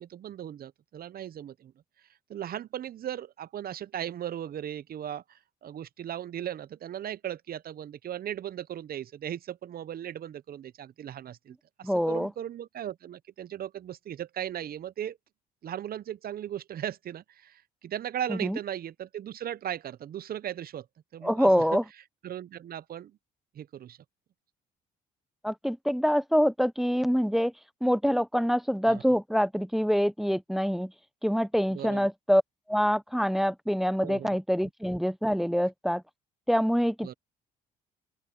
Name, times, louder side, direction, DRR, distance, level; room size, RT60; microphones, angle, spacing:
voice 1, 0.0-1.7 2.3-15.2 15.6-20.9 21.1-21.8 22.2-23.2 23.5-24.0 28.9-29.0 31.7-32.1 34.0-34.4 37.0-37.1, right 10 dB, 55° right, 0.9 m, -37 dB
voice 2, 11.8-12.3 18.3-18.6 21.2-21.8 25.4-27.5 27.8-30.9 31.2-32.4 32.7-36.0 36.5-37.1, equal, ahead, 0.9 m, -25 dB
open air
supercardioid pair, 70°, 19 cm